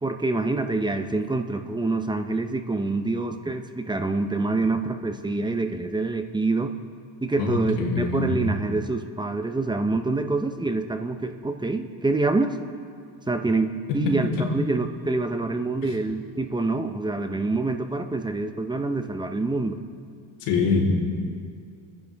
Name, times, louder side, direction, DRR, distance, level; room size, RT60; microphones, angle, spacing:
voice 1, 0.0-6.7 7.2-12.6 13.3-19.8, right 3 dB, 10° right, 7 dB, 0.8 m, -26 dB
voice 2, 7.4-8.4 13.9-14.0 20.4-20.9, left 4 dB, 80° left, -4 dB, 3.9 m, -24 dB
26.0 x 10.5 x 3.6 m, 2.2 s
cardioid pair, 110°, 43 cm